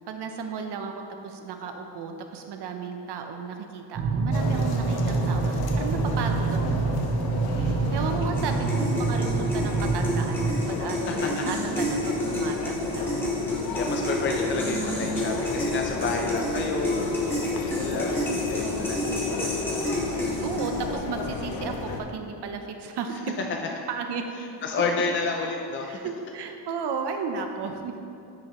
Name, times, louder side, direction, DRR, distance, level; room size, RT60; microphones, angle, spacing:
voice 1, 0.1-6.8 7.6-13.2 20.4-23.3 23.9-24.2 25.8-27.9, right 5 dB, 65° right, 5 dB, 0.8 m, -34 dB
sound 1, 3.9-10.6, right 4 dB, 35° right, 0.6 m, -26 dB
sound 2, 4.3-22.0, left 4 dB, 55° left, 0.7 m, -34 dB
voice 2, 7.4-7.8 11.1-11.5 13.7-19.8 24.6-26.0, left 4 dB, 30° left, 2 dB, 0.4 m, -31 dB
sound 3, 8.4-21.0, left 1 dB, 5° left, 1.3 m, -30 dB
10.5 x 5.5 x 3.0 m, 2.6 s
cardioid pair, 155°, 43 cm